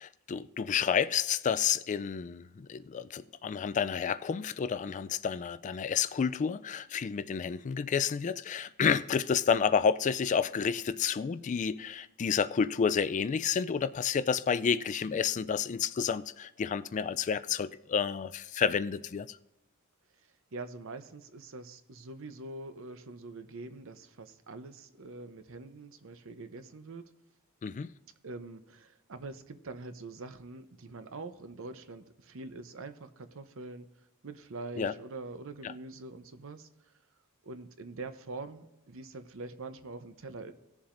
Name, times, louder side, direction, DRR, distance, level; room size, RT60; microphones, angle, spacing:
voice 1, 0.0-19.4 27.6-27.9 34.8-34.9 35.6-35.7, left 7 dB, 35° left, 0.3 m, -30 dB
voice 2, 20.5-27.1 28.2-33.9 34.2-36.9 37.4-40.5, right 3 dB, 65° right, 0.8 m, -44 dB
18.5 x 7.2 x 2.6 m
head